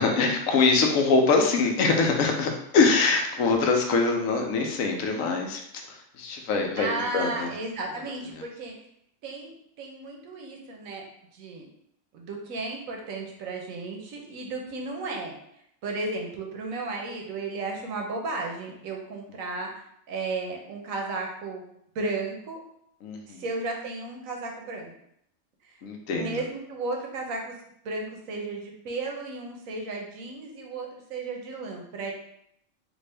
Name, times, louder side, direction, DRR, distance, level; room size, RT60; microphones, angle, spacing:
voice 1, 0.0-5.6 5.9-7.5 23.0-23.4 25.8-26.4, left 4 dB, 85° left, 2 dB, 1.0 m, -23 dB
voice 2, 6.8-8.7 9.2-11.1 11.3-11.7 12.1-15.3 15.8-21.6 21.9-22.6 23.3-24.9 25.6-25.8 26.1-27.6 27.8-32.1, right 3 dB, 85° right, 1 dB, 1.1 m, -34 dB
3.5 x 2.5 x 3.3 m, 0.74 s
omnidirectional pair, 1.4 m